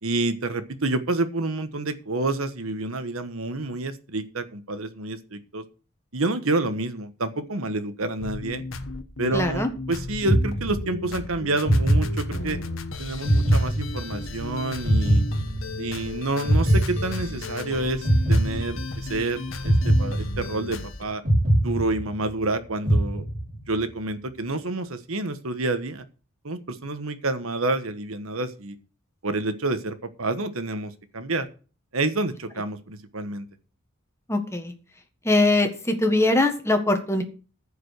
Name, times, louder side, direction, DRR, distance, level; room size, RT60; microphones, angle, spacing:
voice 1, 0.0-5.6 6.1-8.6 9.2-12.6 13.0-15.2 15.8-21.2 21.6-23.3 23.7-26.0 26.4-28.8 29.2-31.5 31.9-33.5, right 2 dB, 75° right, 10 dB, 1.3 m, -28 dB
sound 1, 8.2-21.0, left 3 dB, 65° left, 1.3 m, -35 dB
voice 2, 9.3-9.7 34.3-34.7 35.2-37.2, left 2 dB, 15° left, 6 dB, 1.5 m, -22 dB
sound 2, 10.3-11.1 11.6-12.7 13.3-14.4 14.9-16.0 16.5-17.6 18.0-19.1 19.6-20.8 21.3-22.4 22.9-23.7, right 1 dB, 40° right, 5.6 m, -22 dB
15.0 x 5.2 x 6.4 m, 0.36 s
head